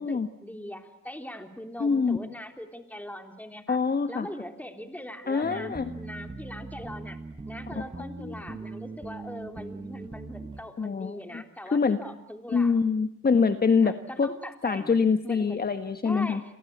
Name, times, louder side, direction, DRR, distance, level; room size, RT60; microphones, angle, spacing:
voice 1, 0.0-3.8 4.1-7.2 7.5-12.8 13.8-15.6 16.0-16.4, left 1 dB, 5° left, 6 dB, 3.4 m, -41 dB
voice 2, 1.8-2.3 3.7-4.3 5.3-5.8 7.7-7.8 8.2-8.3 10.8-12.0 12.5-14.3 14.6-16.4, left 5 dB, 30° left, 9 dB, 1.4 m, -25 dB
sound 1, 5.4-10.6, right 3 dB, 15° right, 1.8 m, -40 dB
29.5 x 23.0 x 8.6 m, 0.74 s
cardioid pair, 90°, 30 cm